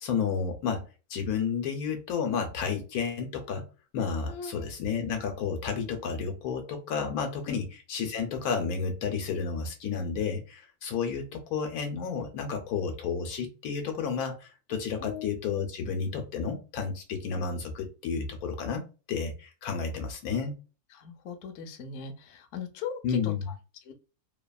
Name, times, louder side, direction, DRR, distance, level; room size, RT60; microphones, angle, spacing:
voice 1, 0.0-0.8 1.1-3.6 3.9-20.6 23.0-23.5, left 6 dB, 85° left, 5 dB, 1.2 m, -31 dB
voice 2, 4.3-4.7 7.5-7.6 15.0-15.3 20.9-23.5 23.9-24.0, left 6 dB, 65° left, 6 dB, 0.8 m, -39 dB
2.8 x 2.3 x 2.3 m, 0.32 s
omnidirectional pair, 1.6 m